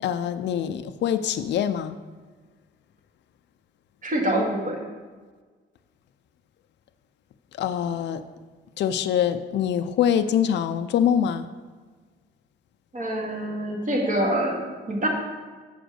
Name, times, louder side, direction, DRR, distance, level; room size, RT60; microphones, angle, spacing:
voice 1, 0.0-2.0 7.6-8.2 8.8-11.4, left 9 dB, 65° left, 10 dB, 0.4 m, -24 dB
voice 2, 4.0-4.8 12.9-15.1, right 1 dB, 40° right, -1 dB, 2.0 m, -25 dB
7.2 x 5.0 x 6.3 m, 1.4 s
cardioid pair, 90°, 20 cm